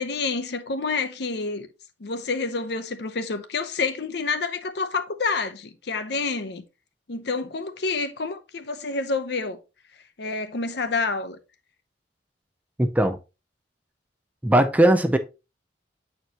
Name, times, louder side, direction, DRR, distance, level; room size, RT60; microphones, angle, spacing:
voice 1, 0.0-1.7 2.0-6.6 7.1-9.6 10.2-11.4, left 4 dB, 60° left, 0.7 m, -28 dB
voice 2, 12.8-13.2 14.4-15.2, right 1 dB, 10° right, 0.4 m, -19 dB
8.0 x 4.5 x 2.8 m
head